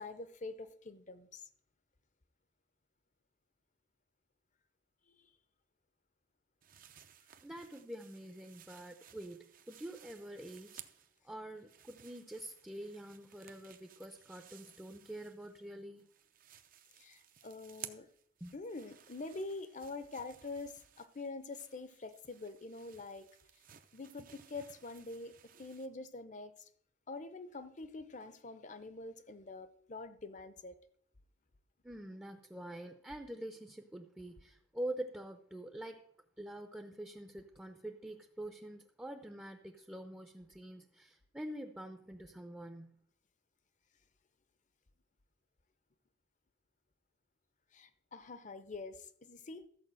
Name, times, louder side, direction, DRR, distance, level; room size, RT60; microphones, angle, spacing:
voice 1, 0.0-1.5 5.1-5.3 17.0-18.1 18.5-23.3 23.9-25.3 25.6-26.7 27.1-30.7 47.7-49.7, left 3 dB, 40° left, 12 dB, 0.7 m, -45 dB
sound 1, 6.6-11.2 11.5-15.7 16.0-25.9, right 10 dB, 45° right, 0.7 m, -57 dB
voice 2, 7.4-10.8 11.2-16.1 18.4-18.6 31.8-36.0 36.4-43.0, right 1 dB, 10° right, 5 dB, 0.7 m, -46 dB
13.5 x 4.7 x 7.6 m, 0.64 s
head